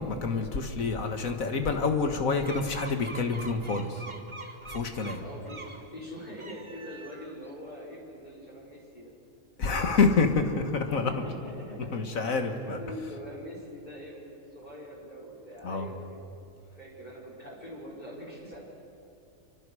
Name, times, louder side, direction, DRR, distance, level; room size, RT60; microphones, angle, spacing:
voice 1, 0.0-4.0 4.7-5.2 9.6-11.1 11.9-12.8 15.6-15.9, left 4 dB, 75° left, 5 dB, 2.0 m, -27 dB
sound 1, 2.4-5.8 6.3-7.5, right 2 dB, 20° right, 1.3 m, -44 dB
voice 2, 5.1-9.1 10.9-16.2 16.7-18.6, equal, 30° left, -5 dB, 5.9 m, -43 dB
27.5 x 24.5 x 4.9 m, 2.7 s
omnidirectional pair, 1.4 m